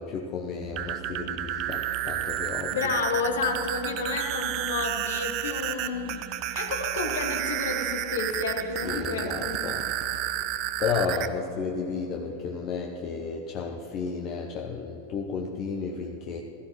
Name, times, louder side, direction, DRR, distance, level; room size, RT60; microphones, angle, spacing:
voice 1, 0.0-2.9 8.8-9.9 10.8-16.4, left 5 dB, 35° left, 2 dB, 0.8 m, -32 dB
sound 1, 0.6-11.3, right 13 dB, 40° right, 0.4 m, -31 dB
voice 2, 2.7-6.2 6.5-9.8, left 4 dB, 65° left, 5 dB, 1.3 m, -30 dB
16.0 x 14.0 x 3.1 m, 3.0 s
figure-of-eight pair, 90°, 0 cm